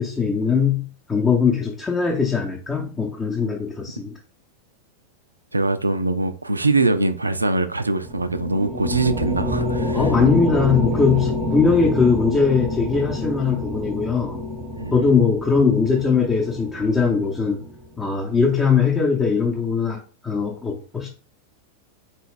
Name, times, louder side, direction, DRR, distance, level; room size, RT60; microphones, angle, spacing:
voice 1, 0.0-4.2 9.9-14.4 14.9-17.6 18.0-21.1, left 5 dB, 15° left, 0.7 m, -20 dB
voice 2, 5.5-10.0 14.8-15.1, right 2 dB, 80° right, 0.3 m, -22 dB
sound 1, 8.0-17.8, left 1 dB, 20° right, 0.8 m, -27 dB
3.9 x 2.3 x 3.5 m
figure-of-eight pair, 90°, 0 cm